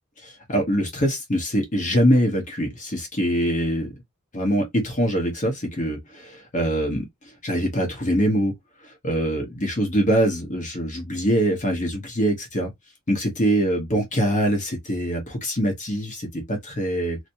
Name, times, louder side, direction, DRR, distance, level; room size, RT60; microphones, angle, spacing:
voice 1, 0.2-3.9 4.3-7.0 7.4-8.5 8.8-12.7 13.1-17.2, equal, 35° left, 1.1 m, -23 dB
3.0 x 2.8 x 2.6 m
head